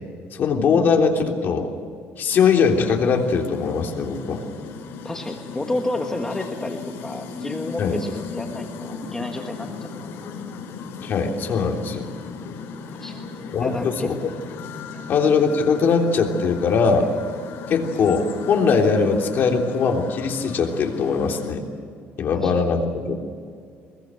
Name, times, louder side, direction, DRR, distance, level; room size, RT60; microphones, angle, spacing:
voice 1, 0.3-1.7 2.2-4.4 7.8-8.0 11.0-12.1 13.5-14.2 15.1-17.1 17.7-21.6 22.2-23.1, left 5 dB, 50° left, 2 dB, 3.4 m, -21 dB
sound 1, 2.3-21.5, left 5 dB, 75° left, 4.8 m, -37 dB
voice 2, 5.0-10.1 12.9-13.2 13.6-14.1 14.9-15.0 22.3-22.5, left 2 dB, 10° left, 3 dB, 1.5 m, -31 dB
23.0 x 21.5 x 7.7 m, 2.2 s
cardioid pair, 145°, 4 cm